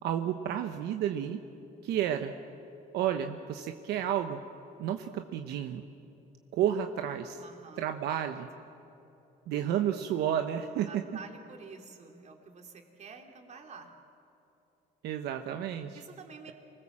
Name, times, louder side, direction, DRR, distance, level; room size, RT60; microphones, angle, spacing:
voice 1, 0.0-1.4 1.8-2.4 2.9-4.4 4.8-5.8 6.5-7.4 7.8-8.5 9.5-11.0 15.0-16.0, right 10 dB, 80° right, 6 dB, 1.0 m, -31 dB
voice 2, 7.3-7.8 10.9-13.9 15.9-16.5, right 5 dB, 45° right, 3 dB, 3.0 m, -49 dB
26.0 x 19.5 x 7.4 m, 2.9 s
cardioid pair, 110°, 17 cm